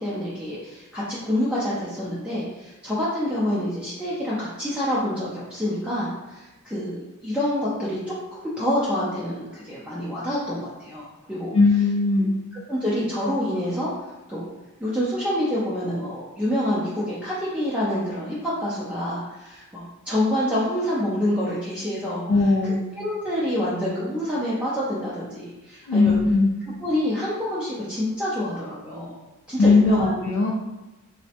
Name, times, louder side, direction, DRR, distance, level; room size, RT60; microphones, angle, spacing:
voice 1, 0.0-8.0 8.3-11.5 12.7-13.9 14.3-14.5 14.8-22.2 22.6-26.2 26.8-29.2 29.5-30.2, left 1 dB, 5° right, -9 dB, 0.4 m, -27 dB
voice 2, 11.5-12.4 22.3-22.8 25.9-26.5 29.6-30.5, left 3 dB, 65° left, -2 dB, 0.3 m, -19 dB
3.2 x 2.0 x 2.7 m, 1.1 s
head